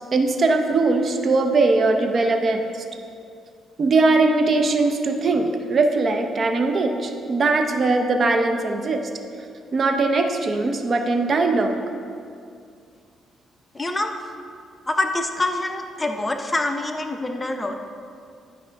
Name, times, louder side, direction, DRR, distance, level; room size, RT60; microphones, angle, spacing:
voice 1, 0.1-2.8 3.8-9.0 9.7-11.7, right 3 dB, 45° right, 5 dB, 0.6 m, -20 dB
voice 2, 13.7-14.1 14.9-17.7, left 2 dB, 20° left, 5 dB, 0.6 m, -25 dB
11.0 x 5.1 x 3.4 m, 2.4 s
cardioid pair, 90°, 0 cm